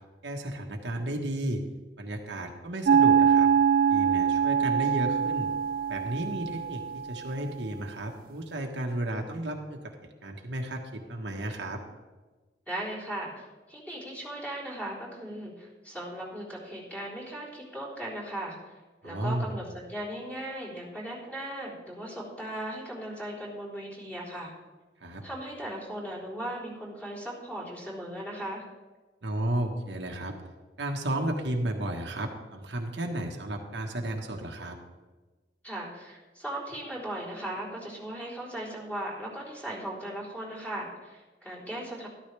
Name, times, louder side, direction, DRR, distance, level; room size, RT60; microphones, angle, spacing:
voice 1, 0.2-1.6 2.0-3.5 3.9-5.5 5.9-11.8 19.0-19.5 25.0-25.2 29.2-30.3 30.8-34.8, right 1 dB, 80° right, 2 dB, 1.4 m, -33 dB
sound 1, 2.9-7.1, right 7 dB, 55° right, 0.3 m, -23 dB
voice 2, 12.7-18.6 19.0-24.5 25.2-28.6 35.6-42.1, right 1 dB, 10° left, -6 dB, 3.9 m, -38 dB
13.0 x 13.0 x 3.4 m, 1.2 s
head